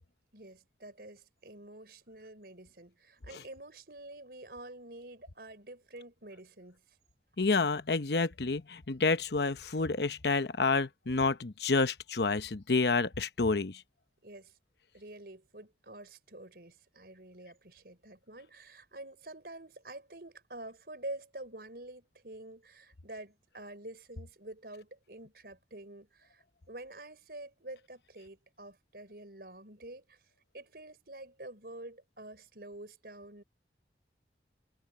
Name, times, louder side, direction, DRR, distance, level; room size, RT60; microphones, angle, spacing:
voice 1, 0.3-6.8 14.2-14.6 14.9-30.2 30.5-33.4, right 1 dB, 60° right, 5.0 m, -48 dB
voice 2, 7.4-13.8, left 3 dB, 70° left, 0.9 m, -29 dB
head